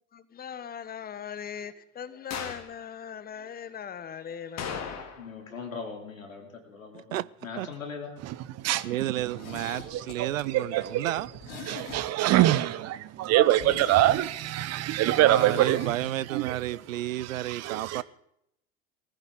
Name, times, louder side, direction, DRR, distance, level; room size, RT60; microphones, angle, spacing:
voice 1, 0.1-4.9, left 8 dB, 25° left, 1.0 m, -40 dB
sound 1, 2.3-2.7 4.6-5.4 5.7-5.8 10.8-10.9, left 7 dB, 40° left, 2.6 m, -37 dB
voice 2, 5.2-8.2, left 5 dB, 85° left, 3.0 m, -40 dB
voice 3, 6.9-7.3 7.6-7.7 8.8-11.3 15.2-18.0, right 14 dB, 75° right, 0.5 m, -31 dB
voice 4, 8.2-8.9 9.8-11.1 11.6-16.8 17.1-18.0, right 14 dB, 40° right, 0.9 m, -25 dB
Zipper (clothing), 9.1-12.4 12.7-12.8 13.2-13.3 13.5-16.0 16.2-16.3, left 4 dB, 55° left, 4.2 m, -43 dB
19.5 x 14.5 x 3.7 m
figure-of-eight pair, 75°, 40 cm